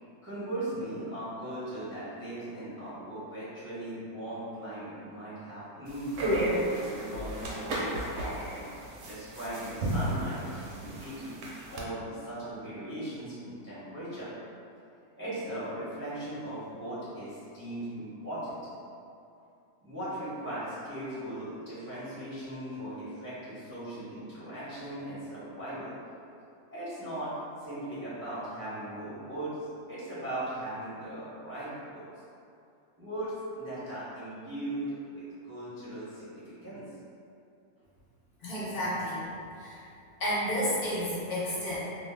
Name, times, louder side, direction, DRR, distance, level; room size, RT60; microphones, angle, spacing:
voice 1, 0.2-8.6 9.0-11.4 11.7-14.3 15.1-18.6 19.8-25.9 26.7-27.3 27.6-29.5 29.9-32.1 33.0-36.8, right 1 dB, 20° right, -12 dB, 0.4 m, -38 dB
sound 1, 5.9-11.8, right 1 dB, 70° right, 0.8 m, -33 dB
voice 2, 38.4-39.2 39.6-39.8 40.2-41.8, equal, 60° left, -9 dB, 1.0 m, -31 dB
2.6 x 2.0 x 3.2 m, 2.6 s
omnidirectional pair, 1.6 m